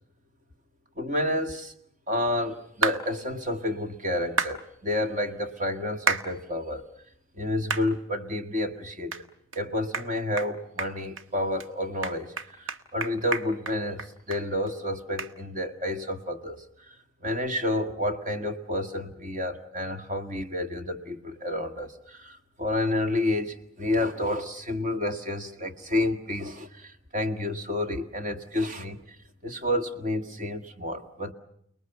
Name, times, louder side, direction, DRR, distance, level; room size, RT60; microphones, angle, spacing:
voice 1, 1.0-1.7 2.1-6.9 7.3-9.2 9.6-29.2 29.4-31.3, left 1 dB, 35° right, 6 dB, 1.8 m, -30 dB
sound 1, 2.8-3.0 4.4-4.6 6.1-6.3 6.8-6.9 7.7-7.9 8.3-8.4 9.1-9.2 9.5-9.6 9.9-10.1 10.4-10.5 10.8-11.2 11.6-11.7 12.0-14.4 14.7-14.8 15.2-15.3, right 4 dB, 75° right, 1.4 m, -29 dB
29.5 x 20.0 x 7.0 m, 0.73 s
head